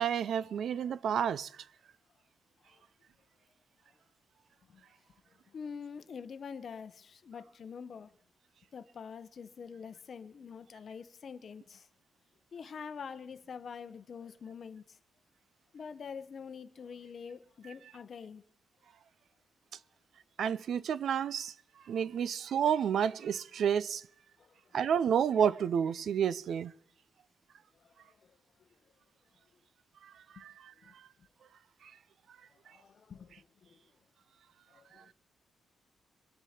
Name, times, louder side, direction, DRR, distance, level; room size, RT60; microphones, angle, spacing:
voice 1, 0.0-1.5 20.4-21.5 21.9-24.0 24.7-26.7 30.0-30.7 31.8-31.9, right 8 dB, 65° right, 0.4 m, -30 dB
voice 2, 5.5-8.1 8.7-11.8 12.5-14.8 15.7-18.4 30.9-31.0 32.7-33.3 34.7-35.1, left 6 dB, 45° left, 0.7 m, -45 dB
23.0 x 8.2 x 4.3 m
wide cardioid pair, 150°, 0 cm